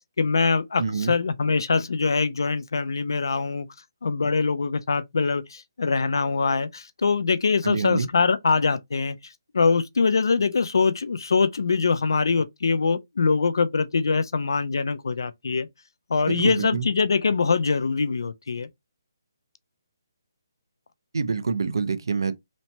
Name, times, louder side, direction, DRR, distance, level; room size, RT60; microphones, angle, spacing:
voice 1, 0.2-3.7 4.0-9.2 9.5-15.7 16.1-18.7, left 4 dB, 70° left, 0.4 m, -23 dB
voice 2, 0.8-1.2 7.6-8.1 16.3-16.9 21.1-22.3, right 5 dB, 70° right, 0.5 m, -26 dB
3.0 x 2.1 x 2.7 m
hypercardioid pair, 175°, 2 cm